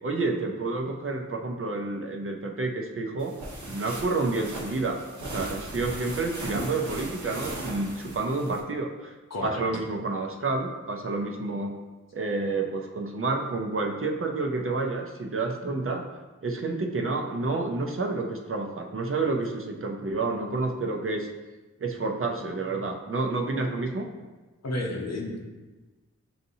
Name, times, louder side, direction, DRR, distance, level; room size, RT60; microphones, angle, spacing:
voice 1, 0.0-3.4 3.6-5.0 5.3-9.1 9.4-11.7 12.1-16.0 16.4-21.3 21.8-24.1, right 3 dB, 45° right, 2 dB, 0.6 m, -29 dB
sound 1, 3.2-8.6, right 1 dB, 75° right, 0.8 m, -38 dB
voice 2, 9.3-9.6 24.6-25.4, left 1 dB, 60° left, 0 dB, 0.8 m, -31 dB
6.5 x 2.7 x 2.7 m, 1.2 s
wide cardioid pair, 60°, 29 cm